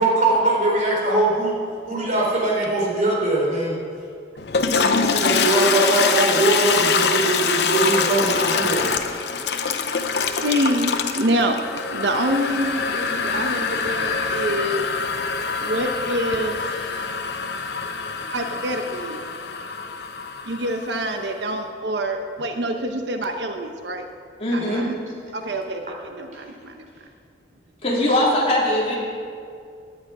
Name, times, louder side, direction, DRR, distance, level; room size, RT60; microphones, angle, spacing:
voice 1, 0.0-1.5 1.9-3.8 5.0-8.8 24.6-24.9, right 2 dB, 45° right, -3 dB, 3.9 m, -21 dB
Toilet flush, 4.4-21.1, left 5 dB, 70° left, 0.8 m, -24 dB
voice 2, 10.4-11.6 11.9-14.9 15.6-16.6 18.3-19.2 20.4-24.0 24.5-25.0 25.3-27.1, right 1 dB, 80° right, 5 dB, 1.0 m, -26 dB
voice 3, 24.4-24.9 27.8-29.0, left 1 dB, 35° left, -5 dB, 3.2 m, -21 dB
17.5 x 10.5 x 4.8 m, 2.3 s
head